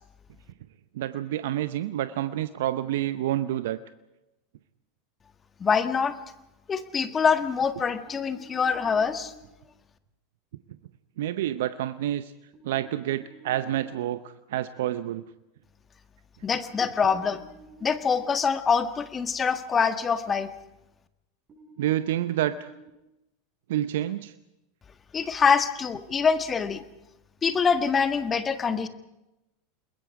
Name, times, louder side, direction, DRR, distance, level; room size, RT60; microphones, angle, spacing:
voice 1, 0.9-3.8 11.2-12.3 12.6-15.2 21.8-22.7 23.7-24.3, right 13 dB, 70° right, 12 dB, 0.8 m, -28 dB
voice 2, 5.6-6.2 6.7-9.3 16.4-17.4 17.8-20.5 25.1-26.8 27.4-28.9, left 6 dB, 25° left, 10 dB, 1.7 m, -24 dB
sound 1, 8.1-9.4 12.5-13.9 17.0-18.4 21.5-22.9, right 2 dB, 30° right, 7.2 m, -51 dB
29.0 x 21.0 x 4.9 m, 0.91 s
hypercardioid pair, 90°, 0 cm